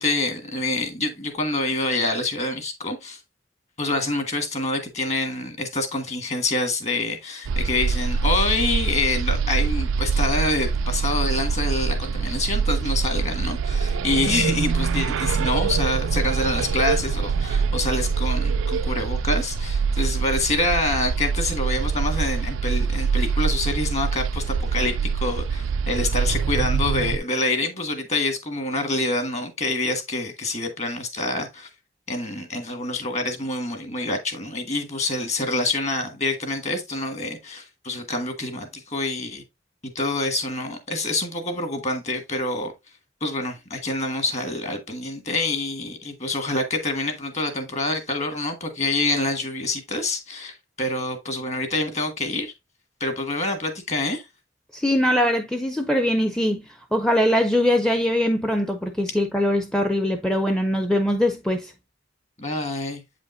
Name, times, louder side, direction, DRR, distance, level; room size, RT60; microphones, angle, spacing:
voice 1, 0.0-3.2 3.8-31.7 32.1-39.4 39.8-42.7 43.2-52.5 53.0-54.2 62.4-63.0, left 2 dB, 35° left, 1.6 m, -26 dB
sound 1, 7.4-27.2, right 5 dB, 85° right, 0.4 m, -24 dB
voice 2, 54.7-56.6 56.9-61.7, left 1 dB, 5° left, 0.5 m, -22 dB
8.2 x 5.1 x 2.6 m
head